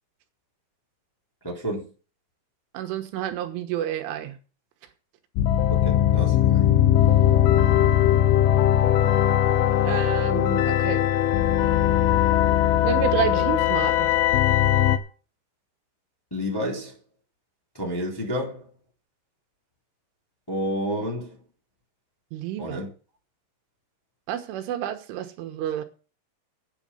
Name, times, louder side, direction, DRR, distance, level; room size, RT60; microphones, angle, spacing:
voice 1, 1.4-1.8 5.7-6.7 16.3-16.9 17.7-18.7 20.5-21.3 22.6-22.9, equal, 5° left, -2 dB, 2.3 m, -30 dB
voice 2, 2.7-4.4 9.8-11.1 12.8-14.1 22.3-22.8 24.3-25.9, right 11 dB, 85° right, 6 dB, 3.7 m, -29 dB
sound 1, 5.4-15.0, left 11 dB, 75° left, 2.4 m, -20 dB
9.0 x 8.3 x 7.7 m, 0.36 s
omnidirectional pair, 5.6 m